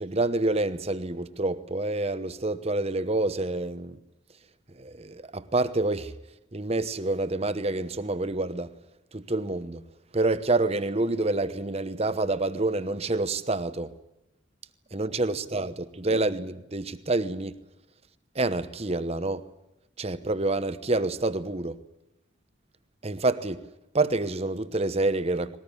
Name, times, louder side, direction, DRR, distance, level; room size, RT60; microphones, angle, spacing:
voice 1, 0.0-4.0 4.8-6.1 6.5-8.7 9.1-9.8 10.1-13.9 14.9-17.6 18.3-19.5 20.0-21.8 23.0-23.6 23.9-25.6, right 2 dB, 30° right, 1.0 m, -27 dB
20.5 x 19.0 x 10.0 m
head